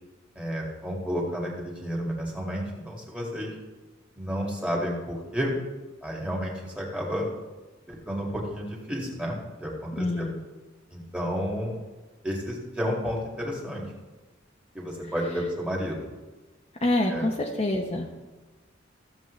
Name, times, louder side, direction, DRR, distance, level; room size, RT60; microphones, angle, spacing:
voice 1, 0.4-3.6 4.2-5.6 6.0-7.3 7.9-10.3 10.9-11.7 12.2-13.9 14.7-16.1 17.1-17.3, equal, 5° right, -3 dB, 2.0 m, -31 dB
voice 2, 10.0-10.3 16.8-18.1, left 1 dB, 30° left, 0 dB, 0.8 m, -26 dB
15.0 x 7.4 x 3.2 m, 1.2 s
head